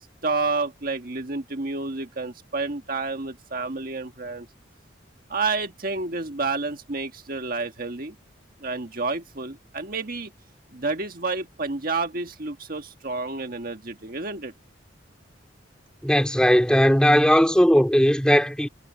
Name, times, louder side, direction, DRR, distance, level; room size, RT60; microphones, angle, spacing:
voice 1, 0.0-4.5 5.3-8.2 8.6-10.3 10.7-14.5, right 3 dB, 50° right, 1.6 m, -30 dB
voice 2, 16.0-18.7, equal, 5° left, 3.2 m, -18 dB
head